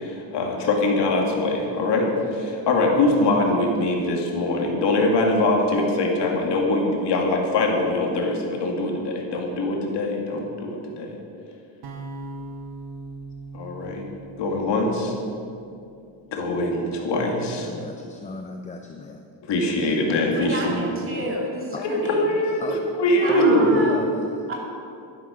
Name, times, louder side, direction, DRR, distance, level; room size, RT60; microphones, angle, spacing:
voice 1, 0.0-11.2 13.5-14.1 14.3-15.1 16.3-17.7 19.4-20.8 21.8-23.7, left 2 dB, 65° left, 0 dB, 2.3 m, -23 dB
sound 1, 11.8-16.0, right 3 dB, 55° right, 1.4 m, -40 dB
voice 2, 17.6-19.2 21.7-21.8 22.6-23.0 23.2-24.5, left 3 dB, 15° left, 4 dB, 0.5 m, -34 dB
voice 3, 20.3-22.3 23.2-24.0 24.5-24.6, right 1 dB, 25° right, -2 dB, 2.7 m, -30 dB
12.0 x 11.0 x 5.1 m, 2.5 s
cardioid pair, 150°, 45 cm